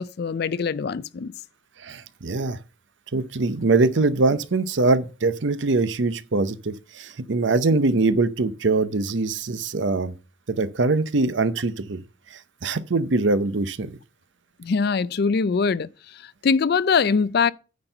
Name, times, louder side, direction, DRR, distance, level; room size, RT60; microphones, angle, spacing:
voice 1, 0.0-1.3 14.6-17.5, left 5 dB, 55° left, 0.4 m, -23 dB
voice 2, 1.8-2.6 3.1-10.1 10.5-12.0 12.3-14.0, right 3 dB, 70° right, 0.7 m, -23 dB
9.5 x 4.4 x 6.6 m
head